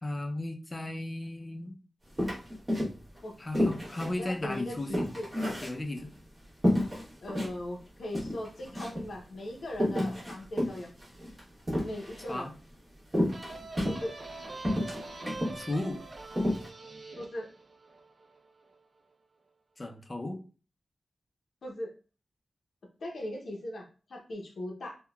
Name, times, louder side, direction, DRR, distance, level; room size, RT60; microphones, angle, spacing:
voice 1, 0.0-1.8 3.4-5.1 5.4-6.1 12.3-12.5 15.2-16.0 19.8-20.4, left 1 dB, 25° left, 3 dB, 0.4 m, -35 dB
sound 1, 2.2-3.2 3.5-6.2 6.6-7.5 7.9-8.0 8.1-9.1 9.7-12.3 13.1-14.3 14.6-15.6 15.9-16.0 16.3-16.7, left 1 dB, 20° right, 1.0 m, -30 dB
voice 2, 4.2-5.3 7.2-10.9 11.8-12.5 13.9-14.1 17.2-17.5 21.6-21.9 23.0-25.0, left 1 dB, 75° left, 0 dB, 0.6 m, -39 dB
sound 2, 13.3-18.7, right 2 dB, 50° right, 0.5 m, -44 dB
3.6 x 2.2 x 2.2 m, 0.36 s
wide cardioid pair, 145°, 0 cm